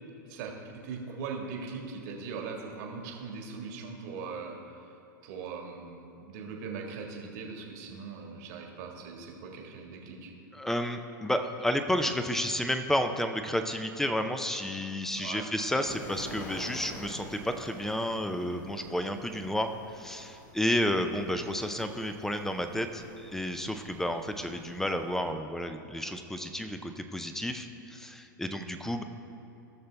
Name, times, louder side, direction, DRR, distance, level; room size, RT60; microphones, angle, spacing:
voice 1, 0.3-4.6 5.2-10.3 15.1-15.4, right 5 dB, 55° right, 1 dB, 1.7 m, -40 dB
voice 2, 10.5-29.0, equal, 5° left, 8 dB, 0.6 m, -31 dB
sound 1, 15.8-25.3, left 1 dB, 55° left, 1.9 m, -48 dB
16.0 x 6.6 x 3.4 m, 2.9 s
hypercardioid pair, 95°, 11 cm